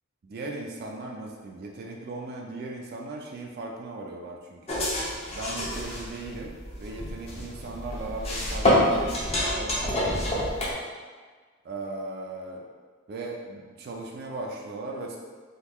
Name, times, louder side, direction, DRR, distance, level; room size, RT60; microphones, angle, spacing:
voice 1, 0.2-4.8 5.3-10.6 11.6-12.6 13.1-15.2, right 2 dB, 50° right, 0 dB, 0.3 m, -38 dB
sound 1, 4.7-10.7, left 1 dB, 30° left, 0.6 m, -27 dB
3.6 x 2.3 x 2.9 m, 1.5 s
head